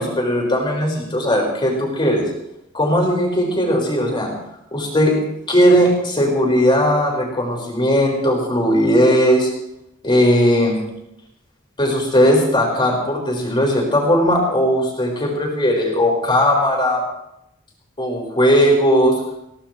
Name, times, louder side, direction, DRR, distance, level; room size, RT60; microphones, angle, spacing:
voice 1, 0.0-2.3 2.7-4.3 4.7-5.1 5.5-9.5 10.0-10.8 11.8-17.0 18.0-19.2, equal, 25° left, -1 dB, 4.9 m, -17 dB
22.0 x 17.0 x 3.2 m, 0.83 s
head